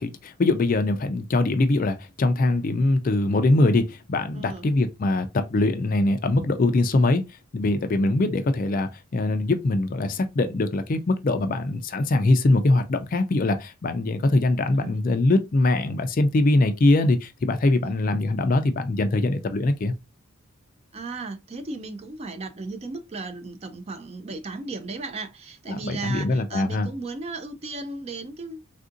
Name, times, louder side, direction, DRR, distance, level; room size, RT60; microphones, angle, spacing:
voice 1, 0.0-19.9 25.7-26.9, left 2 dB, 40° left, 0.3 m, -22 dB
voice 2, 4.3-4.7 14.7-15.0 17.8-18.0 20.9-28.6, right 3 dB, 30° right, 0.4 m, -35 dB
3.5 x 2.6 x 2.5 m
head